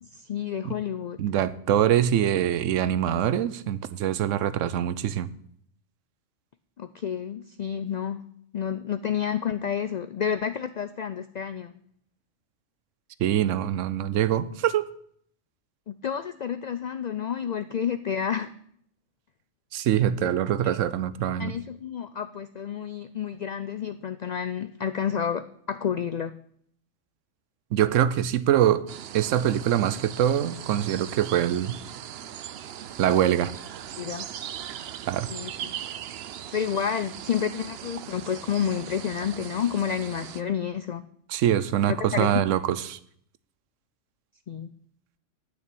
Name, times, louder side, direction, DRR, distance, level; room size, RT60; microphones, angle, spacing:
voice 1, 0.0-1.2 6.8-8.2 8.5-11.7 15.9-18.5 20.2-20.3 20.6-20.8 21.4-26.3 34.0-34.3 35.3-35.7 36.5-41.0 41.9-42.4 44.5-44.7, left 8 dB, 75° left, 0.3 m, -30 dB
voice 2, 1.2-5.3 13.2-14.8 19.7-21.6 27.7-28.8 29.1-31.7 33.0-33.5 35.1-35.3 41.3-43.0, right 10 dB, 85° right, 1.0 m, -24 dB
sound 1, 28.9-40.4, right 10 dB, 65° right, 0.7 m, -39 dB
9.5 x 5.9 x 8.5 m
omnidirectional pair, 1.3 m